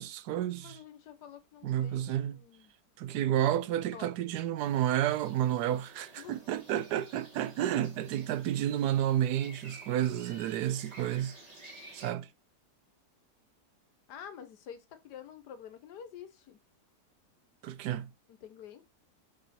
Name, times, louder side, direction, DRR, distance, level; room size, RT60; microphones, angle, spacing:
voice 1, 0.0-0.8 1.6-2.4 3.0-11.4 11.9-12.3 17.6-18.1, right 11 dB, 80° right, 1.1 m, -31 dB
voice 2, 0.6-2.7 3.9-4.4 6.2-6.4 14.1-16.6 18.3-18.8, left 8 dB, 80° left, 1.5 m, -48 dB
sound 1, 4.6-12.1, right 2 dB, 25° right, 1.7 m, -53 dB
6.4 x 3.6 x 4.2 m
omnidirectional pair, 1.7 m